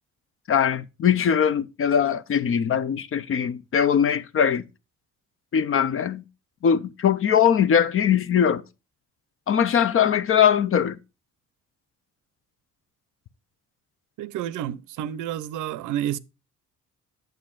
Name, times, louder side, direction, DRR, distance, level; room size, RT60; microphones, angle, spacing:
voice 1, 0.5-4.6 5.5-6.2 6.6-8.6 9.5-11.0, left 8 dB, 45° left, 0.6 m, -21 dB
voice 2, 14.2-16.2, right 11 dB, 85° right, 0.6 m, -30 dB
8.6 x 7.9 x 2.4 m
cardioid pair, 90°, 30 cm